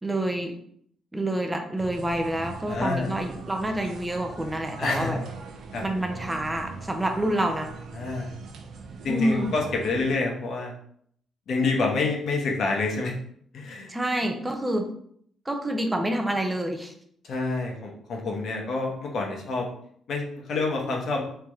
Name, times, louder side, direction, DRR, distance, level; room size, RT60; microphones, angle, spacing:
voice 1, 0.0-0.6 1.1-5.2 5.8-7.7 9.1-9.5 13.9-14.9 15.5-16.9, right 1 dB, 15° right, 4 dB, 0.5 m, -27 dB
sound 1, 1.8-10.1, right 4 dB, 70° right, 0.5 m, -41 dB
voice 2, 2.7-3.2 4.8-5.2 5.7-5.8 7.9-8.3 9.0-10.7 11.5-13.1 13.5-13.9 17.2-19.7 20.1-21.2, left 3 dB, 65° left, 0 dB, 1.0 m, -27 dB
3.3 x 2.9 x 3.6 m, 0.65 s
cardioid pair, 90°, 0 cm